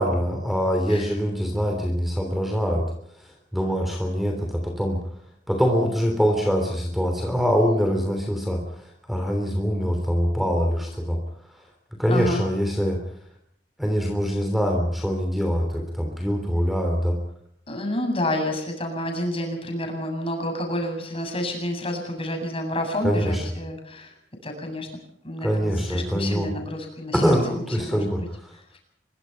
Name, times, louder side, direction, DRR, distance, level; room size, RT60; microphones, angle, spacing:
voice 1, 0.0-5.0 5.5-11.2 11.6-13.0 13.8-17.2 23.0-23.4 25.4-26.5 27.1-28.6, equal, ahead, 4 dB, 3.1 m, -24 dB
voice 2, 12.1-12.4 17.7-24.1 24.4-24.9 25.2-28.3 28.7-28.8, left 1 dB, 30° left, 3 dB, 7.7 m, -29 dB
25.0 x 23.0 x 5.8 m, 0.72 s
head